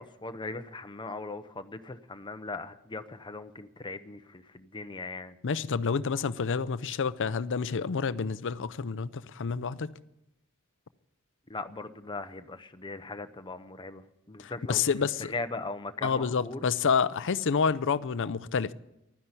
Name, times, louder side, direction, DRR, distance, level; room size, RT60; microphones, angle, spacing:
voice 1, 0.0-5.4 11.5-14.8 15.2-16.6, left 3 dB, 20° left, 0.8 m, -39 dB
voice 2, 5.4-9.9 14.4-15.3 16.0-18.7, left 5 dB, 60° left, 0.6 m, -28 dB
12.0 x 10.0 x 9.7 m
head